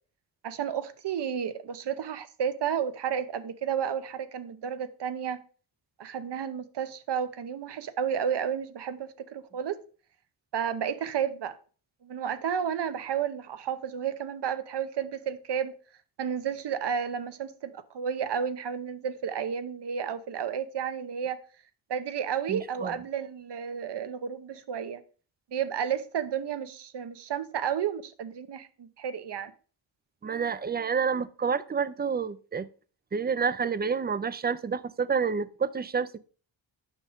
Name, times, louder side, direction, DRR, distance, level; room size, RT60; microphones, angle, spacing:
voice 1, 0.4-5.4 6.0-9.8 10.5-11.6 12.0-15.7 16.2-21.4 21.9-25.0 25.5-29.5, right 8 dB, 60° right, 0.8 m, -32 dB
voice 2, 22.5-22.9 30.2-32.7 33.1-36.2, right 6 dB, 25° right, 0.4 m, -29 dB
9.1 x 6.2 x 3.5 m
wide cardioid pair, 115°, 47 cm